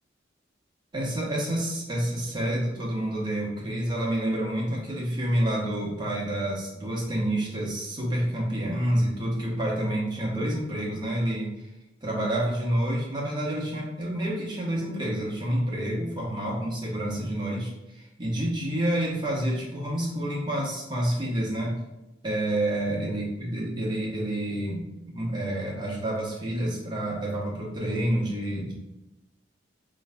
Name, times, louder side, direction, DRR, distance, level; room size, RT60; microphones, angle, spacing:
voice 1, 0.9-11.7 12.0-21.8 22.2-28.7, right 1 dB, 25° right, -4 dB, 1.0 m, -28 dB
5.0 x 3.0 x 2.2 m, 0.98 s
head